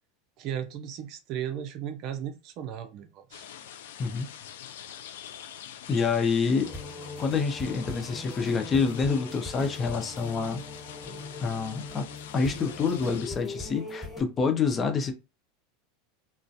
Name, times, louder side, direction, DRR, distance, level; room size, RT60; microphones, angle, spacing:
voice 1, 0.4-3.4, right 10 dB, 50° right, 0.4 m, -36 dB
sound 1, 3.3-13.3, left 9 dB, 85° left, 0.3 m, -45 dB
voice 2, 5.9-6.7 7.2-10.6 11.4-12.0 12.3-15.1, left 5 dB, 25° left, 0.5 m, -27 dB
sound 2, 6.6-14.2, left 3 dB, 5° left, 1.4 m, -40 dB
2.3 x 2.1 x 2.7 m
supercardioid pair, 135°, 0 cm